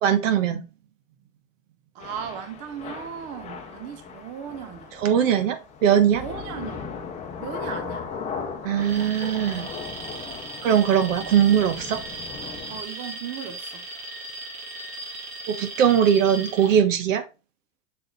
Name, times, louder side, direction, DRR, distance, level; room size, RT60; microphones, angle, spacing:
voice 1, 0.0-0.6 5.0-6.2 8.6-9.7 10.6-12.0 15.5-17.2, right 9 dB, 65° right, 1.4 m, -20 dB
voice 2, 1.9-5.0 6.1-6.9 7.4-8.2 12.7-13.9, right 8 dB, 20° right, 0.4 m, -37 dB
Thunder / Rain, 2.0-12.8, left 6 dB, 15° left, 1.0 m, -37 dB
Alarm, 8.8-16.8, right 2 dB, 45° right, 2.9 m, -37 dB
6.6 x 4.1 x 3.8 m
supercardioid pair, 145°, 42 cm